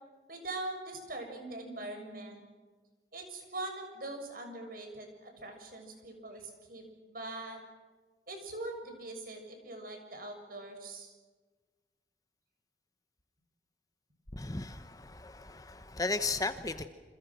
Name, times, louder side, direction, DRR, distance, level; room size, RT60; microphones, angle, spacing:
voice 1, 0.3-2.4 3.1-7.6 8.3-11.1, right 2 dB, 50° right, 6.9 m, -42 dB
voice 2, 14.3-16.9, left 3 dB, 20° left, 1.0 m, -35 dB
28.5 x 27.0 x 6.3 m
head